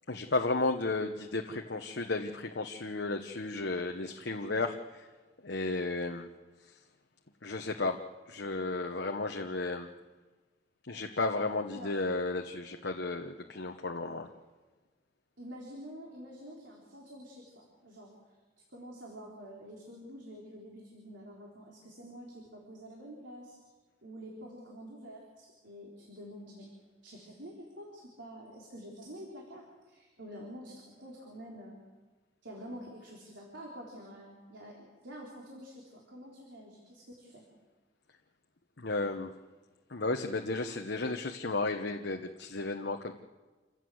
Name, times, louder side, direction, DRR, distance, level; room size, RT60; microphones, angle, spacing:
voice 1, 0.1-5.0 5.4-6.3 7.4-8.0 8.3-9.9 10.9-14.3 38.8-39.3 39.9-43.1, left 3 dB, 65° left, 4 dB, 1.1 m, -33 dB
voice 2, 15.4-18.1 18.7-23.6 24.0-26.7 27.0-31.8 32.4-37.5, equal, 75° right, -3 dB, 4.0 m, -48 dB
27.5 x 16.0 x 7.9 m, 1.3 s
head